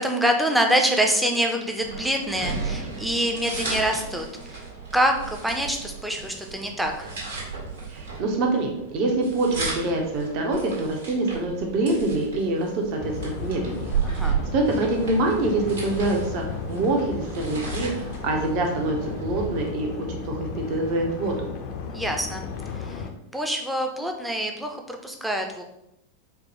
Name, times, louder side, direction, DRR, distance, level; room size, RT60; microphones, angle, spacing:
voice 1, 0.0-4.6 4.9-7.1 14.0-14.4 21.9-22.5 22.8-23.0 23.3-25.6, equal, 5° right, 3 dB, 0.5 m, -25 dB
sound 1, 1.8-19.7, right 5 dB, 65° right, 1.4 m, -34 dB
voice 2, 7.9-13.9 14.5-21.5, right 2 dB, 40° right, 1 dB, 0.7 m, -25 dB
sound 2, 13.0-23.1, left 6 dB, 45° left, 0.5 m, -35 dB
4.5 x 2.1 x 3.1 m, 0.83 s
figure-of-eight pair, 90°, 0 cm